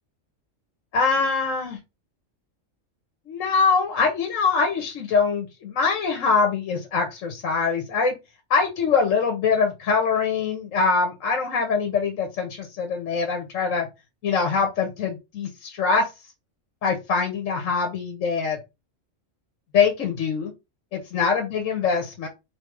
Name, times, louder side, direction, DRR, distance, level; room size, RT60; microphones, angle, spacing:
voice 1, 0.9-1.8 3.3-8.1 8.5-13.9 14.2-16.1 16.8-18.6 19.7-20.5 20.9-22.3, left 5 dB, 75° left, 4 dB, 1.3 m, -23 dB
3.4 x 2.7 x 4.6 m, 0.24 s
omnidirectional pair, 1.3 m